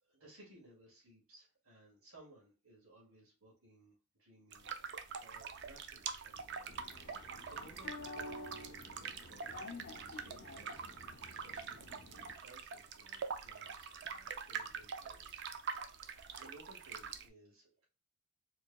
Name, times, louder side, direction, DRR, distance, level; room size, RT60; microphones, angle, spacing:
voice 1, 0.0-6.7 7.1-10.8 11.3-15.4 15.9-17.8, right 1 dB, 75° right, -4 dB, 2.0 m, -61 dB
sound 1, 4.5-17.3, right 6 dB, 55° right, 0.5 m, -45 dB
sound 2, 6.7-12.3, left 2 dB, 55° left, 0.6 m, -50 dB
4.6 x 3.3 x 2.2 m, 0.32 s
head